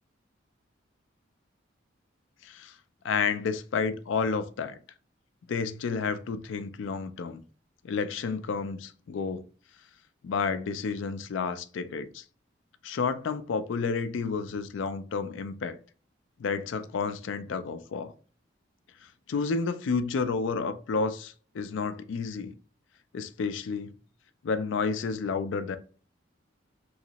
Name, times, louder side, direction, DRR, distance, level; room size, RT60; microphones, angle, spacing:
voice 1, 2.4-2.7 3.0-4.8 5.5-7.4 7.8-9.4 10.2-12.2 12.8-15.8 16.4-18.1 19.3-22.5 23.1-23.9 24.4-25.8, left 5 dB, 70° left, 0.4 m, -30 dB
3.1 x 2.9 x 2.8 m
head